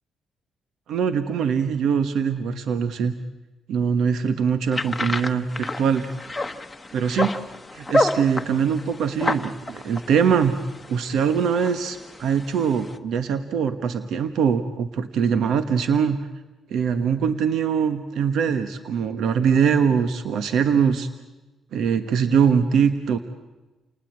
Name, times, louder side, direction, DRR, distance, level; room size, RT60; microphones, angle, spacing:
voice 1, 0.9-3.1 3.7-6.1 6.9-7.3 7.7-10.6 10.9-16.2 16.7-21.1 21.7-23.2, right 7 dB, 75° right, 10 dB, 1.3 m, -22 dB
sound 1, 4.7-13.0, left 1 dB, 15° left, 1.3 m, -29 dB
29.5 x 19.0 x 8.9 m, 1.1 s
cardioid pair, 90°, 0 cm